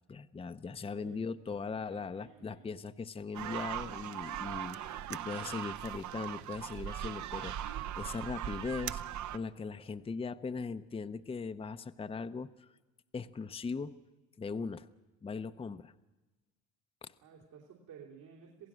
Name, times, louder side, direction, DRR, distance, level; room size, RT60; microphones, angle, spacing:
voice 1, 0.1-4.8 5.1-9.0 9.3-12.7 13.1-14.0 14.4-14.9 15.2-15.9 17.0-17.1, left 4 dB, 15° left, 10 dB, 0.6 m, -39 dB
voice 2, 1.7-2.7 17.2-18.7, right 7 dB, 75° right, -3 dB, 3.3 m, -54 dB
sound 1, 3.3-9.4, right 11 dB, 45° right, 0.7 m, -39 dB
27.0 x 15.5 x 6.3 m, 1.1 s
supercardioid pair, 85°, 39 cm